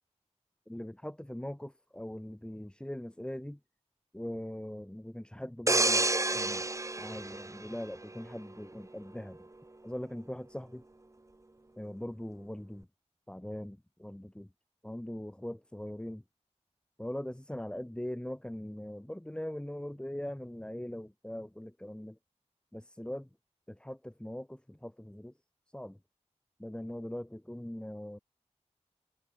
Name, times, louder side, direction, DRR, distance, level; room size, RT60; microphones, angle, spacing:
voice 1, 0.7-3.6 4.1-6.7 7.0-9.4 9.8-10.8 11.8-12.9 13.3-14.5 14.8-16.2 17.0-22.2 22.7-23.2 23.8-25.3 25.7-26.0 26.6-28.2, left 1 dB, 10° left, 1.1 m, -41 dB
sound 1, 5.7-8.3 8.8-9.0, right 2 dB, 25° right, 1.0 m, -30 dB
wide cardioid pair, 75°, 12 cm